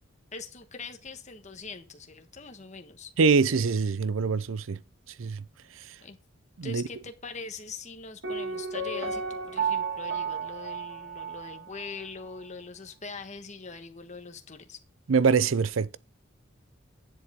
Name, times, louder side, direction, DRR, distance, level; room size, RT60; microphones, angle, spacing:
voice 1, 0.3-3.1 6.0-6.2 6.6-14.8, left 4 dB, 35° left, 1.4 m, -42 dB
voice 2, 3.2-4.8 5.2-5.4 6.6-6.8 15.1-16.0, right 5 dB, 80° right, 0.5 m, -24 dB
Piano, 8.2-12.0 12.3-12.4, right 5 dB, 55° right, 1.8 m, -33 dB
9.8 x 7.8 x 3.6 m
head